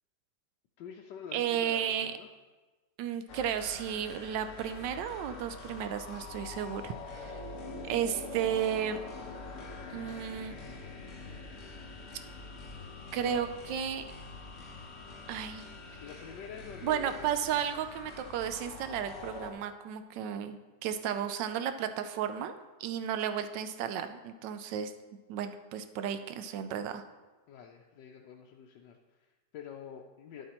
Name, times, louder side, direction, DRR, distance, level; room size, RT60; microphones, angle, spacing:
voice 1, 0.8-2.3 13.2-13.5 16.0-17.3 27.5-30.5, left 7 dB, 80° left, 1 dB, 1.2 m, -47 dB
voice 2, 1.3-2.1 3.0-7.4 7.9-9.0 9.9-10.6 13.1-14.0 15.3-15.7 16.8-22.5 22.8-24.9 25.3-27.0, right 9 dB, 90° right, 10 dB, 1.2 m, -33 dB
sound 1, 3.3-19.5, left 3 dB, 50° left, 1.2 m, -45 dB
11.5 x 8.1 x 2.9 m, 1.3 s
omnidirectional pair, 1.9 m